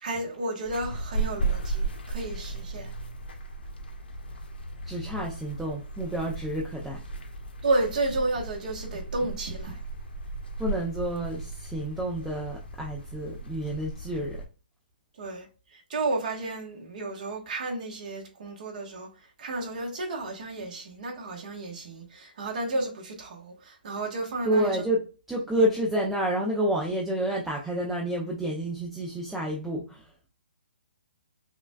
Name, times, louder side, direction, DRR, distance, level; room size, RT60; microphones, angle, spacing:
voice 1, 0.0-2.9 7.6-9.8 15.1-24.8, right 2 dB, 50° right, 1.1 m, -32 dB
sound 1, 0.6-14.4, right 3 dB, 90° left, 1.1 m, -35 dB
voice 2, 4.8-7.0 10.6-14.4 24.4-30.1, right 1 dB, 5° right, 0.4 m, -29 dB
5.6 x 2.2 x 2.2 m
hypercardioid pair, 160°, 6 cm